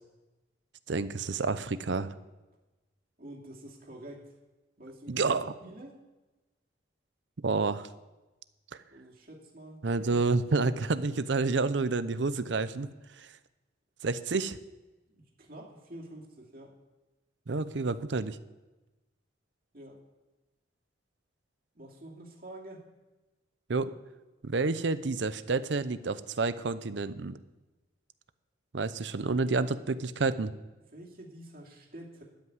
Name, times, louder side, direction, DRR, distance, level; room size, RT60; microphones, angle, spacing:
voice 1, 0.9-2.1 5.1-5.5 7.4-7.9 9.8-12.9 13.2-13.3 14.0-14.6 17.5-18.4 23.7-23.9 24.4-27.4 28.7-30.5, right 3 dB, 70° right, 14 dB, 0.6 m, -29 dB
voice 2, 3.2-4.3 4.8-5.3 5.6-6.0 8.9-9.8 15.1-16.7 19.7-20.0 21.7-22.9 30.9-32.2, right 1 dB, 50° right, -1 dB, 2.4 m, -47 dB
13.0 x 5.9 x 9.4 m, 1.1 s
head